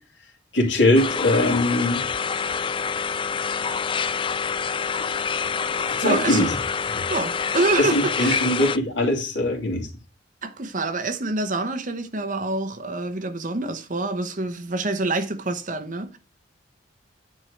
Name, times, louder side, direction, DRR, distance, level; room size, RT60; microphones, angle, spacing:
voice 1, 0.5-2.1 5.9-6.6 6.9-7.0 7.8-9.9, left 1 dB, 80° left, 2.5 m, -21 dB
sound 1, 0.9-8.8, left 6 dB, 25° left, 0.4 m, -26 dB
voice 2, 6.0-6.5 7.1-8.4 10.4-16.2, right 2 dB, 45° right, 1.0 m, -26 dB
9.7 x 4.6 x 6.4 m
head